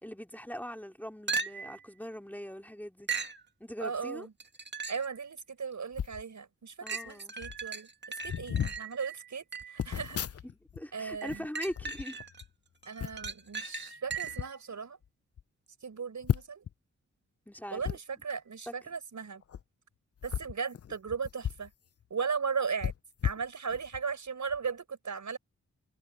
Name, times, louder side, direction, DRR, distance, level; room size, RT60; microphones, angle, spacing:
voice 1, 0.0-3.1 3.6-4.3 6.8-7.3 10.4-12.2 17.5-17.8 18.7-18.8, equal, 5° left, 2.6 m, -41 dB
sound 1, 1.3-1.8 3.1-3.4 4.4-5.1 5.7-5.8 6.9-9.8 11.2-12.4 12.8-14.5 18.3-18.4, right 5 dB, 35° right, 2.1 m, -38 dB
voice 2, 3.8-4.3 4.9-7.9 8.2-10.2 10.9-11.4 12.9-15.0 15.8-16.7 17.7-19.4 20.2-21.7 22.1-22.9 23.2-25.4, right 5 dB, 70° right, 5.6 m, -37 dB
sound 2, 5.9-6.2 7.1-7.2 7.4-7.7 8.2-8.8 9.8-10.8 11.1-12.5 13.0-13.3 14.1-14.5 15.0-15.1 15.4-15.5 16.2-16.7 17.8-18.0 19.4-19.6 20.2-21.7 22.0-22.1 22.8-24.0 24.5-24.7, left 9 dB, 50° left, 0.5 m, -35 dB
wide cardioid pair, 85°, 30 cm